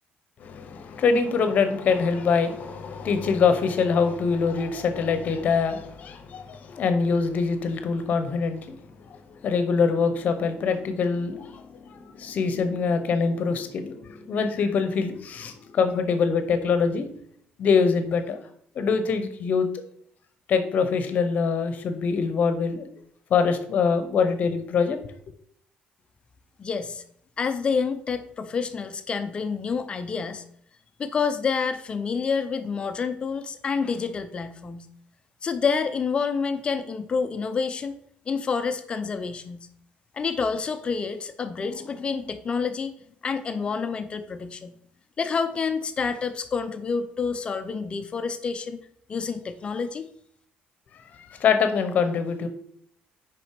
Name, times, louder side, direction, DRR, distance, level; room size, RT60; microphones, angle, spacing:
voice 1, 0.4-8.8 9.1-17.1 17.6-18.4 18.7-19.7 20.5-22.8 23.3-25.0 51.1-52.5, left 5 dB, 50° left, 9 dB, 1.0 m, -24 dB
voice 2, 26.6-27.0 27.4-30.4 31.0-34.9 35.4-38.0 38.3-39.7 40.1-42.9 43.2-44.7 45.2-48.8 49.1-50.1, left 5 dB, 30° left, 9 dB, 0.6 m, -28 dB
6.4 x 5.2 x 4.9 m, 0.64 s
cardioid pair, 140°, 3 cm